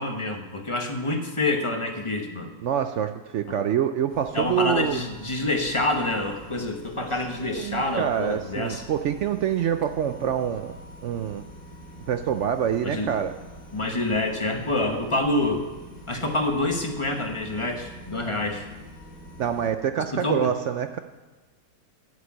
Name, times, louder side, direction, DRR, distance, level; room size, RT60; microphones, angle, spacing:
voice 1, 0.0-2.5 3.5-3.6 4.3-8.8 12.8-13.1 13.7-15.7 16.1-18.7 20.0-20.5, left 2 dB, 20° left, 4 dB, 1.1 m, -27 dB
voice 2, 2.6-5.0 7.4-11.4 12.1-13.3 19.4-21.0, right 9 dB, 65° right, 9 dB, 0.7 m, -26 dB
sound 1, 4.1-19.7, equal, 80° left, 2.8 m, -45 dB
12.0 x 6.4 x 8.6 m, 1.2 s
omnidirectional pair, 1.6 m